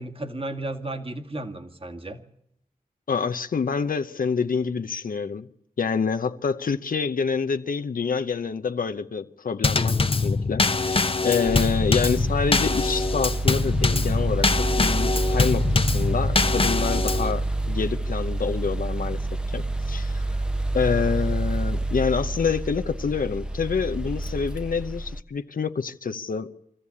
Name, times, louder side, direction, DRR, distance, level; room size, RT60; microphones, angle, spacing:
voice 1, 0.0-2.2, right 2 dB, 40° right, 2.0 m, -34 dB
voice 2, 3.1-5.5 5.8-19.2 19.5-20.3 20.7-26.5, left 5 dB, 80° left, 0.8 m, -27 dB
Drum kit / Snare drum / Bass drum, 9.6-17.3, left 4 dB, 40° left, 0.8 m, -23 dB
sound 1, 11.4-25.2, right 2 dB, 5° right, 0.8 m, -28 dB
24.0 x 14.0 x 8.6 m
wide cardioid pair, 60°, 14 cm